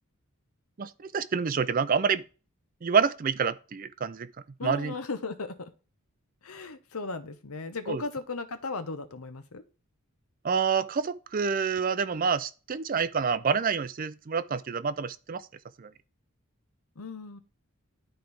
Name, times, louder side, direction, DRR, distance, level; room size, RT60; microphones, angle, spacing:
voice 1, 0.8-2.2 2.8-4.3 4.6-4.9 7.9-8.0 10.4-15.5 15.8-15.9, right 6 dB, 40° right, 0.4 m, -27 dB
voice 2, 4.6-5.7 6.4-9.6 17.0-17.4, left 3 dB, 85° left, 1.0 m, -36 dB
11.5 x 4.5 x 3.4 m
head